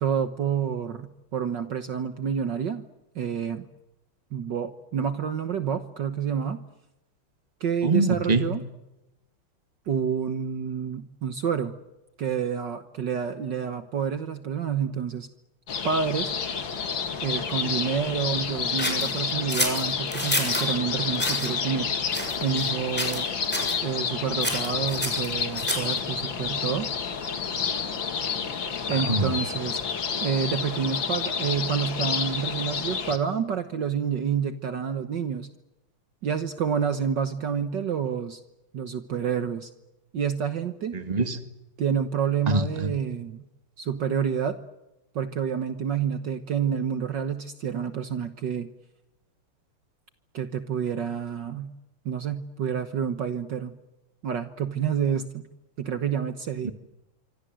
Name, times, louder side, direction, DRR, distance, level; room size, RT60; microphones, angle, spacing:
voice 1, 0.0-2.9 3.2-3.7 4.3-6.6 7.6-8.6 9.9-11.7 12.2-15.3 15.8-16.3 17.2-21.9 22.4-23.3 23.8-26.9 28.9-29.8 30.2-35.5 36.2-38.4 38.7-39.7 40.1-41.0 41.8-43.4 43.8-44.6 45.2-48.7 50.3-51.7 52.1-53.7 54.2-55.4 55.8-56.7, right 7 dB, 55° right, 10 dB, 1.8 m, -28 dB
voice 2, 7.8-8.5 29.1-29.3 40.9-41.4 42.5-42.9 56.6-56.7, right 3 dB, 20° right, 8 dB, 2.0 m, -24 dB
sound 1, 15.7-33.2, left 6 dB, 60° left, 2.7 m, -29 dB
sound 2, 18.8-20.7 21.1-21.5 22.1-22.7 23.0-23.3 23.5-23.8 24.4-26.0, equal, 5° left, 6.6 m, -29 dB
26.0 x 25.5 x 7.7 m, 0.95 s
omnidirectional pair, 2.4 m